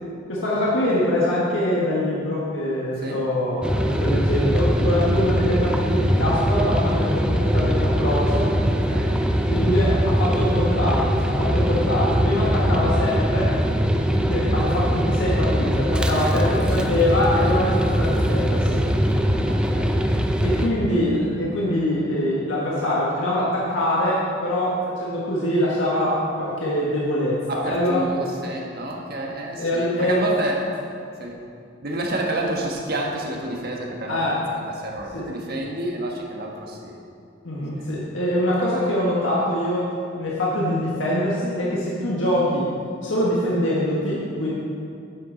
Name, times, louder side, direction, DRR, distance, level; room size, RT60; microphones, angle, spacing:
voice 1, 0.3-8.5 9.5-13.5 14.3-18.9 20.4-28.0 29.6-30.2 34.1-34.4 35.1-35.2 37.4-39.8 40.2-42.7 43.0-44.5, left 1 dB, 90° left, -6 dB, 1.5 m, -24 dB
sound 1, 3.6-20.7, equal, 5° right, 0.5 m, -21 dB
voice 2, 8.9-9.2 16.2-16.4 16.8-16.9 17.5-17.6 19.5-20.0 27.5-30.6 31.2-31.4 31.8-34.2 34.7-37.0 37.8-38.0, right 1 dB, 55° right, -1 dB, 1.3 m, -29 dB
9.5 x 8.2 x 3.9 m, 2.6 s
head